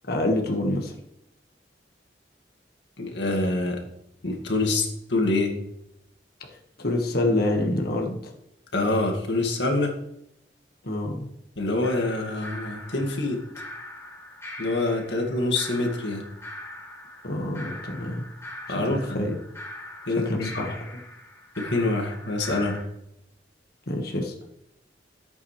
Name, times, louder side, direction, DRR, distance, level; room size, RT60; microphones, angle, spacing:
voice 1, 0.1-0.9 6.5-8.3 10.8-11.3 17.2-18.3 18.8-19.4 20.2-20.8 23.9-24.3, left 1 dB, 60° left, 2 dB, 1.7 m, -27 dB
voice 2, 3.0-3.8 4.2-5.5 8.7-10.0 11.6-13.4 14.6-16.3 18.7-19.3 20.1-20.6 21.6-22.8, left 2 dB, 80° left, 2 dB, 2.1 m, -26 dB
sound 1, 11.8-22.8, left 1 dB, 15° left, 1.6 m, -42 dB
13.5 x 8.4 x 3.2 m, 0.79 s
head